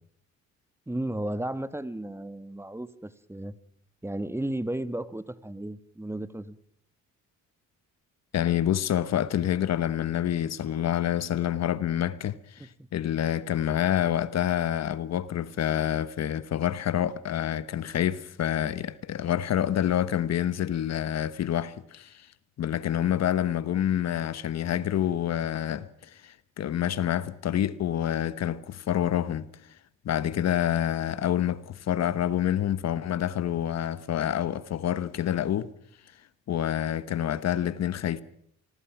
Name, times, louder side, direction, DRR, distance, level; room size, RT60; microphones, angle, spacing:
voice 1, 0.9-3.6 4.0-6.6 12.8-12.9, right 1 dB, 10° right, 1.2 m, -34 dB
voice 2, 8.3-22.3 22.6-29.5 30.0-35.7 36.5-38.2, left 10 dB, 60° left, 1.1 m, -27 dB
26.5 x 20.5 x 6.0 m
cardioid pair, 90°, 30 cm